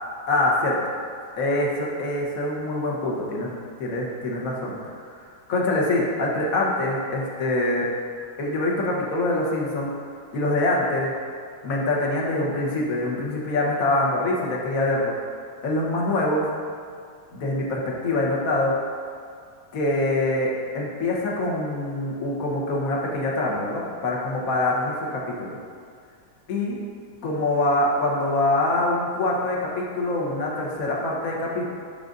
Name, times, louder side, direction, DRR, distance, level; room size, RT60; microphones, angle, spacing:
voice 1, 0.3-0.8 1.4-3.5 3.8-5.1 5.5-7.9 8.4-9.9 10.3-11.1 11.6-15.1 15.6-16.5 17.3-18.7 19.7-25.6 26.5-26.8 27.2-31.7, left 2 dB, 50° left, -2 dB, 1.5 m, -24 dB
10.5 x 6.7 x 2.6 m, 2.2 s
omnidirectional pair, 2.1 m